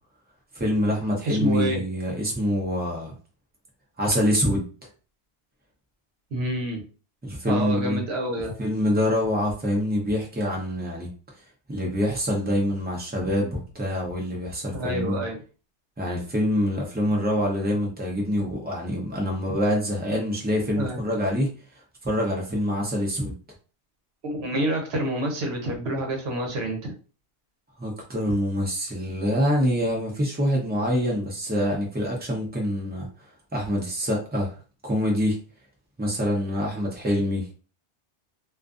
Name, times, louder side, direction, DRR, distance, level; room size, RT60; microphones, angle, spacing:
voice 1, 0.5-3.1 4.0-4.6 7.2-8.0 8.6-11.1 11.7-15.2 16.0-21.5 22.0-23.3 27.8-33.1 33.5-34.5 34.8-35.4 36.0-37.5, equal, 10° right, -1 dB, 0.5 m, -25 dB
voice 2, 1.2-1.8 6.3-6.8 7.5-8.5 14.7-15.4 20.8-21.0 24.2-26.9, right 1 dB, 65° right, 1 dB, 1.1 m, -27 dB
2.5 x 2.4 x 2.4 m, 0.36 s
omnidirectional pair, 1.2 m